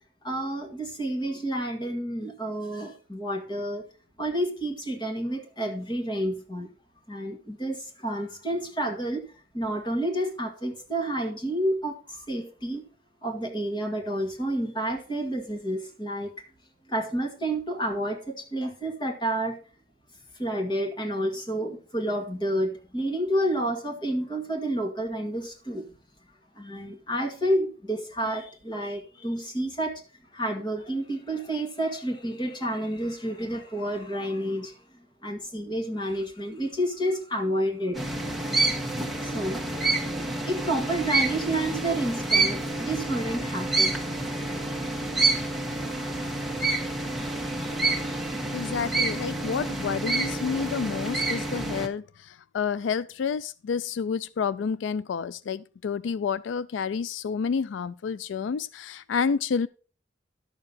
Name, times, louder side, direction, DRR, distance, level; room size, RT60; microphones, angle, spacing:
voice 1, 0.2-3.8 4.2-6.7 7.1-9.3 9.5-12.9 13.2-16.5 16.9-19.6 20.3-25.9 26.6-30.0 30.3-34.8 35.2-38.1 39.2-39.6 40.5-43.9, right 1 dB, 25° left, 2.0 m, -30 dB
sound 1, 37.9-51.9, right 2 dB, ahead, 1.4 m, -28 dB
voice 2, 48.5-59.7, left 6 dB, 85° left, 0.4 m, -29 dB
11.5 x 6.8 x 4.2 m
head